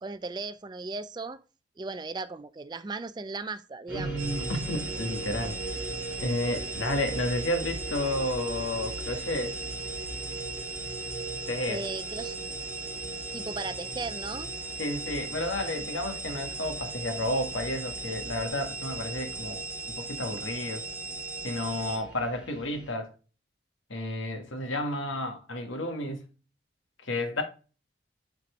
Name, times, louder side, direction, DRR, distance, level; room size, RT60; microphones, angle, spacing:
voice 1, 0.0-1.4 1.8-4.1 11.7-12.4 13.3-14.5, right 3 dB, 20° right, 0.3 m, -36 dB
voice 2, 3.9-5.6 6.2-9.6 11.5-11.8 14.8-20.8 21.4-23.1 23.9-26.2 27.0-27.4, left 1 dB, 85° left, 1.4 m, -31 dB
sound 1, 3.9-22.9, right 2 dB, 5° right, 1.8 m, -40 dB
sound 2, 4.2-22.0, right 3 dB, 40° right, 2.5 m, -38 dB
8.0 x 4.3 x 3.0 m
head